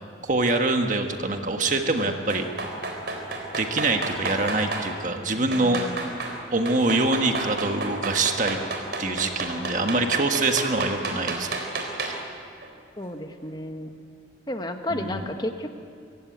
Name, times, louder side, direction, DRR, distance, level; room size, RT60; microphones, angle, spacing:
voice 1, 0.2-2.5 3.6-5.8 6.5-8.6 9.0-11.5 12.0-12.2 14.9-15.3, right 2 dB, 40° right, 4 dB, 1.5 m, -25 dB
sound 1, 2.0-4.9 5.5-6.4 6.7-12.3 12.6-12.7, right 3 dB, 60° right, 3.7 m, -31 dB
voice 2, 5.5-6.1 9.5-10.0 13.0-13.9 14.5-15.7, left 1 dB, 20° left, 6 dB, 1.4 m, -33 dB
25.0 x 15.5 x 9.5 m, 2.2 s
head